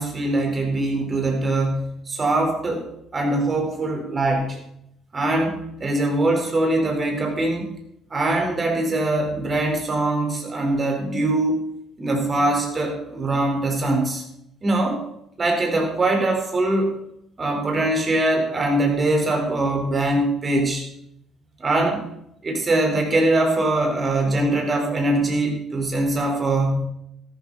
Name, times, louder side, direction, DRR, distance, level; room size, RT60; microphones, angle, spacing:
voice 1, 0.0-2.9 3.1-4.6 5.1-7.7 8.1-11.6 12.0-14.2 14.6-15.0 15.4-16.9 17.4-20.8 21.6-22.0 22.4-26.9, right 2 dB, 35° right, 2 dB, 4.6 m, -22 dB
13.5 x 13.5 x 4.3 m, 0.77 s
figure-of-eight pair, 50°, 0 cm